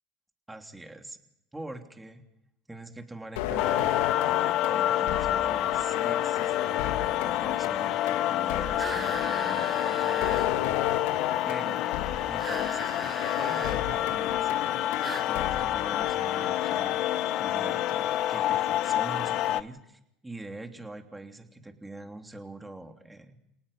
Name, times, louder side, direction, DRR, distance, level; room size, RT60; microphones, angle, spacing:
voice 1, 0.5-1.2 1.5-2.2 2.7-4.2 4.7-10.7 11.4-11.8 12.3-14.8 15.2-17.1 17.4-23.4, right 2 dB, 10° right, 5 dB, 3.0 m, -43 dB
sound 1, 3.4-17.0, left 12 dB, 75° left, 2.0 m, -35 dB
sound 2, 3.6-19.6, left 13 dB, 55° left, 0.9 m, -28 dB
sound 3, 8.8-10.5 12.4-13.8 15.0-15.3, right 3 dB, 25° right, 7.5 m, -38 dB
28.0 x 18.5 x 5.6 m, 0.82 s
hypercardioid pair, 85°, 0 cm